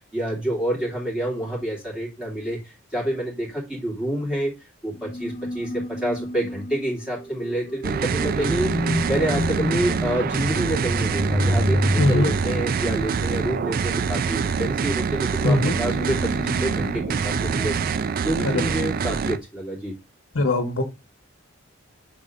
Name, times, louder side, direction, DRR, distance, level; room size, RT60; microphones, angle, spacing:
voice 1, 0.1-4.5 4.8-8.7 9.0-17.7 18.2-19.9, right 1 dB, 5° right, -5 dB, 2.7 m, -28 dB
sound 1, 4.9-18.7, equal, 30° left, 1.6 m, -30 dB
sound 2, 7.8-19.4, right 6 dB, 45° right, 0.3 m, -25 dB
voice 2, 12.0-12.3 15.4-15.7 18.4-18.6 20.3-20.8, left 2 dB, 75° left, 4 dB, 1.0 m, -20 dB
6.1 x 4.1 x 3.7 m, 0.25 s
head